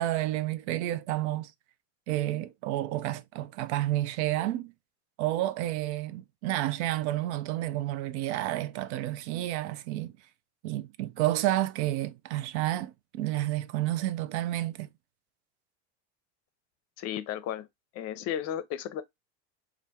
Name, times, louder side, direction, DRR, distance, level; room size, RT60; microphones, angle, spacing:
voice 1, 0.0-1.5 2.1-4.7 5.2-10.1 10.6-14.9, right 14 dB, 80° right, 0.5 m, -30 dB
voice 2, 17.0-17.7 17.9-19.0, left 10 dB, 45° left, 0.6 m, -34 dB
3.3 x 2.5 x 2.7 m
supercardioid pair, 140°, 34 cm